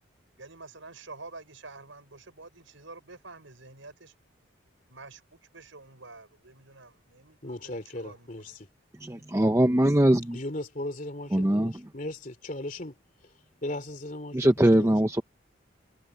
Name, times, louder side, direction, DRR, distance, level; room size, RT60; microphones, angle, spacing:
voice 1, 0.4-4.1 4.9-5.2 5.5-8.6, right 3 dB, 80° right, 5.2 m, -48 dB
voice 2, 7.4-8.7 10.3-12.9 13.6-14.5 14.8-14.9, left 1 dB, 40° left, 3.1 m, -37 dB
voice 3, 9.0-10.4 11.3-11.9 14.3-15.2, right 1 dB, 15° right, 0.6 m, -22 dB
head